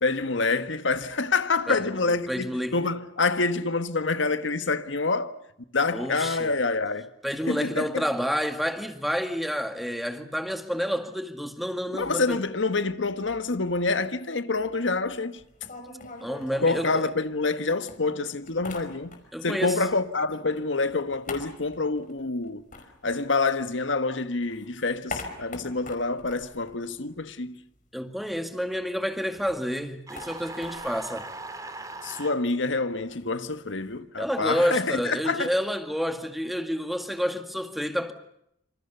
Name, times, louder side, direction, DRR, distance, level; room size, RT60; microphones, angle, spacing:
voice 1, 0.0-5.4 5.7-7.1 7.5-8.0 11.9-15.4 16.6-19.1 19.4-22.6 23.0-27.6 32.0-35.5, left 3 dB, 85° left, 1.5 m, -27 dB
voice 2, 2.1-2.8 5.9-6.5 7.2-12.4 16.2-17.1 19.3-19.8 27.9-31.3 34.2-38.1, equal, ahead, 2.0 m, -29 dB
sound 1, 15.4-17.6 17.9-19.5 19.8-23.9 24.3-27.6 27.8-27.9 28.2-34.0, left 3 dB, 45° left, 5.0 m, -44 dB
sound 2, 30.1-32.4, right 2 dB, 20° right, 2.6 m, -39 dB
27.5 x 26.5 x 6.8 m
head